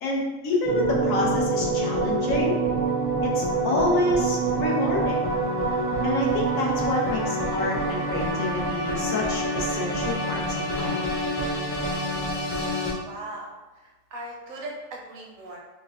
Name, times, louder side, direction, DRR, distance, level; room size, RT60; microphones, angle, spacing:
voice 1, 0.0-2.6 3.2-5.3 6.0-11.0, left 2 dB, 75° left, -3 dB, 1.2 m, -28 dB
sound 1, 0.6-12.9, right 2 dB, 15° left, 0.4 m, -26 dB
voice 2, 13.0-13.5 13.8-15.6, right 1 dB, 80° right, 0 dB, 1.1 m, -38 dB
5.1 x 2.1 x 2.4 m, 1.1 s
omnidirectional pair, 1.4 m